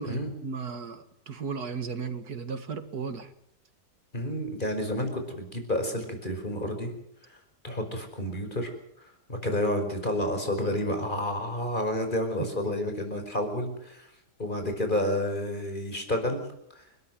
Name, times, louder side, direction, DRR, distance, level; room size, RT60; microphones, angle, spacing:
voice 1, 0.0-3.3, right 5 dB, 65° right, 9 dB, 2.5 m, -35 dB
voice 2, 4.1-6.9 7.3-7.4 7.6-8.7 9.0-14.1 14.4-16.4 16.7-16.8, left 1 dB, 30° left, 6 dB, 5.3 m, -30 dB
30.0 x 13.5 x 7.7 m, 0.73 s
omnidirectional pair, 1.8 m